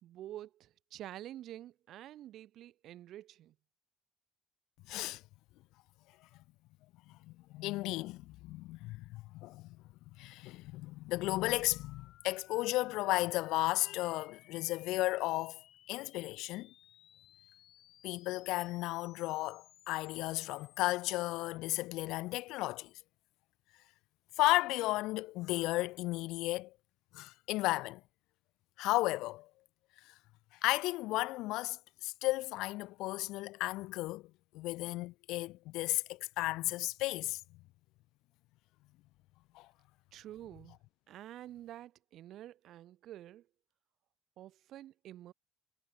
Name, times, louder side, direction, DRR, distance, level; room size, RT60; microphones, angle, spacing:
voice 1, 0.0-3.6 40.1-40.8 41.1-43.5 44.4-45.3, right 13 dB, 55° right, 1.8 m, -48 dB
voice 2, 4.9-5.2 7.1-9.8 10.2-15.6 15.9-16.7 18.0-22.9 24.4-26.7 27.1-28.0 28.8-29.5 30.6-34.2 34.5-37.4 39.5-39.7, left 19 dB, 70° left, 0.6 m, -34 dB
sound 1, 11.7-21.6, left 12 dB, 50° left, 3.2 m, -62 dB
cardioid pair, 140°, 0 cm